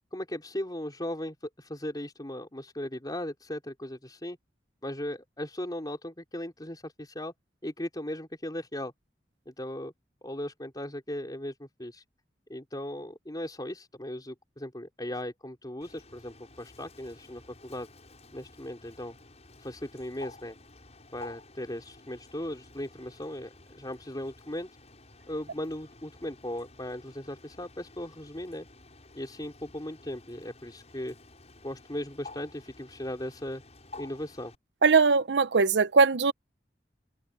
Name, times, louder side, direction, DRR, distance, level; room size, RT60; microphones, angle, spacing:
voice 1, 0.1-4.4 4.8-7.3 7.6-8.9 9.5-9.9 10.2-12.0 12.5-17.9 18.3-19.2 19.6-20.6 21.1-24.7 25.3-28.7 29.1-31.2 31.6-33.6 34.0-34.5, left 1 dB, 25° left, 4.4 m, -37 dB
Bird, 15.8-34.6, left 2 dB, 40° left, 7.0 m, -52 dB
voice 2, 34.8-36.3, right 4 dB, 85° right, 0.7 m, -21 dB
head